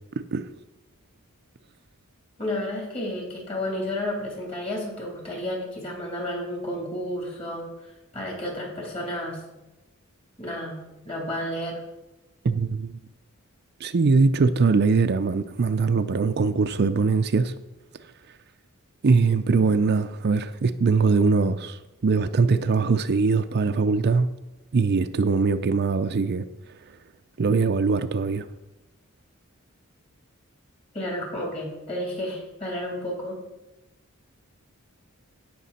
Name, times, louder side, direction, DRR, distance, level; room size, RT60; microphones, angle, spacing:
voice 1, 2.4-7.7 8.1-9.4 10.4-10.8 11.1-11.8 30.9-33.4, left 1 dB, 30° left, 3.5 m, -31 dB
voice 2, 12.4-13.0 13.8-17.5 19.0-24.3 24.7-26.4 27.4-28.5, right 4 dB, 50° right, 0.5 m, -22 dB
16.5 x 6.0 x 4.2 m
head